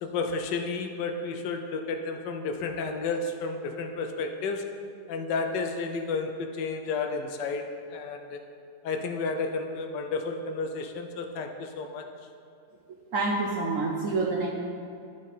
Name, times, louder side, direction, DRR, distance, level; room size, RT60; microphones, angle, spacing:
voice 1, 0.0-4.7 5.1-8.4 8.8-12.1, left 4 dB, 75° left, 5 dB, 1.2 m, -32 dB
voice 2, 13.1-14.5, right 3 dB, 60° right, -2 dB, 0.9 m, -27 dB
10.0 x 5.0 x 4.1 m, 2.5 s
omnidirectional pair, 2.0 m